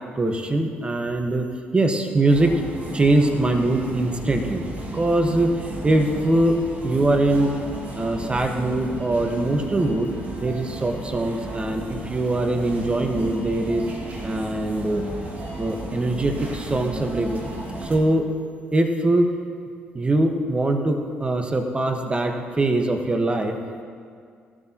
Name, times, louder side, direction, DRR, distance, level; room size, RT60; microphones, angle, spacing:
voice 1, 0.1-2.5 2.9-4.6 4.9-6.6 6.8-7.5 7.9-10.1 10.4-13.8 14.2-15.0 15.6-17.5 17.8-18.2 18.7-19.3 19.9-23.6, right 2 dB, 25° right, 4 dB, 1.5 m, -22 dB
sound 1, 2.3-18.0, right 2 dB, 40° right, 2.2 m, -34 dB
17.5 x 13.0 x 3.1 m, 2.1 s
supercardioid pair, 65°, 4 cm